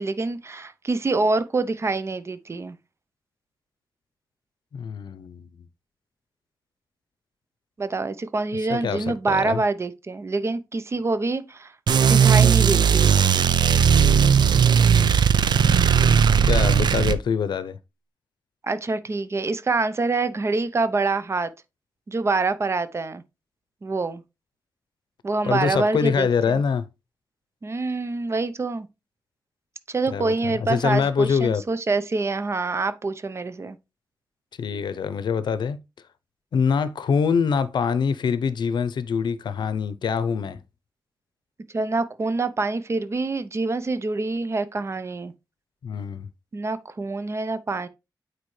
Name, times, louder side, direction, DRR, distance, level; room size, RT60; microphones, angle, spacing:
voice 1, 0.0-2.8 7.8-11.7 12.1-13.2 18.6-21.5 22.1-23.2 23.8-24.2 25.2-26.3 27.6-28.9 29.9-33.8 41.7-45.3 46.5-47.9, right 3 dB, 35° right, 0.7 m, -26 dB
voice 2, 4.7-5.7 8.7-9.6 16.4-17.8 25.4-26.8 30.1-31.6 34.6-35.8 36.5-40.6 45.8-46.3, left 6 dB, 90° left, 0.7 m, -24 dB
sound 1, 11.9-17.2, right 7 dB, 75° right, 0.5 m, -17 dB
8.8 x 4.6 x 3.2 m
wide cardioid pair, 110°, 7 cm